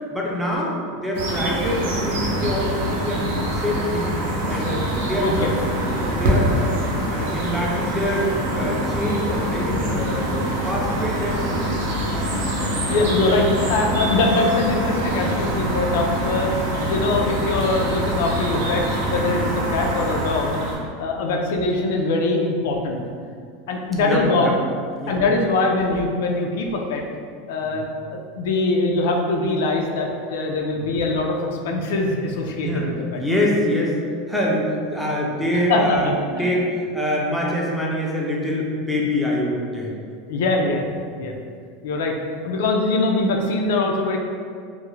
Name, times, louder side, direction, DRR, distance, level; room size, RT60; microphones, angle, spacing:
voice 1, 0.1-3.2 3.5-4.1 4.5-5.7 6.0-6.8 7.1-11.7 19.4-19.5 24.0-24.5 25.0-25.2 27.6-27.8 30.7-30.9 32.6-32.9 33.2-34.0 34.3-40.0, equal, ahead, -4 dB, 0.3 m, -25 dB
sound 1, 1.1-20.8, equal, 90° right, 0.5 m, -24 dB
voice 2, 12.5-16.5 16.8-20.6 21.0-23.0 23.7-24.5 25.1-27.0 27.5-33.2 35.7-36.5 40.3-40.9 41.2-41.3 41.8-42.1 42.4-44.2, left 2 dB, 80° left, 1 dB, 0.3 m, -22 dB
2.3 x 2.0 x 3.0 m, 2.1 s
supercardioid pair, 155°, 0 cm